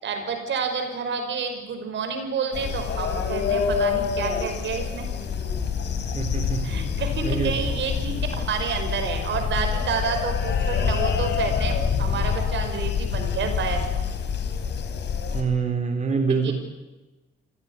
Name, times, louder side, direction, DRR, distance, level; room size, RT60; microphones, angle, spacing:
voice 1, 0.0-5.1 6.6-13.8 16.3-16.5, right 5 dB, 70° right, 6 dB, 5.4 m, -29 dB
sound 1, 2.5-15.4, left 6 dB, 60° left, 4.0 m, -26 dB
voice 2, 6.2-6.6 7.2-7.5 15.3-16.5, right 5 dB, 35° right, 4 dB, 3.4 m, -25 dB
25.0 x 16.5 x 9.8 m, 1.1 s
cardioid pair, 90°, 20 cm